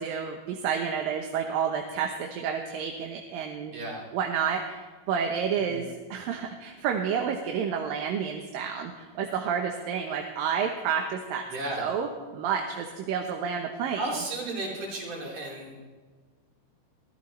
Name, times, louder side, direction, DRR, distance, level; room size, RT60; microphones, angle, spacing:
voice 1, 0.0-3.7 4.1-11.4 11.8-12.1 12.3-14.1, right 7 dB, 75° right, 3 dB, 2.7 m, -30 dB
voice 2, 3.7-4.0 5.6-5.8 11.5-11.9 14.0-15.8, right 2 dB, 60° right, -4 dB, 5.8 m, -34 dB
23.5 x 15.5 x 3.3 m, 1.5 s
omnidirectional pair, 4.3 m